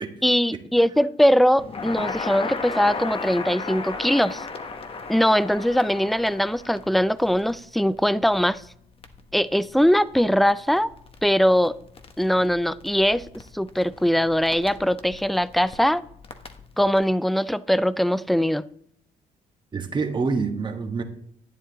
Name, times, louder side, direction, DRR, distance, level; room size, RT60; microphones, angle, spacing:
voice 1, 0.2-4.5 5.1-8.6 9.3-10.9 11.2-11.7 12.2-13.3 13.5-16.0 16.8-18.6, equal, ahead, 0.4 m, -21 dB
Crackle, 1.6-17.0, left 4 dB, 35° left, 1.2 m, -37 dB
voice 2, 19.7-21.0, right 4 dB, 25° right, 1.4 m, -26 dB
11.0 x 9.2 x 4.0 m
cardioid pair, 110°, 17 cm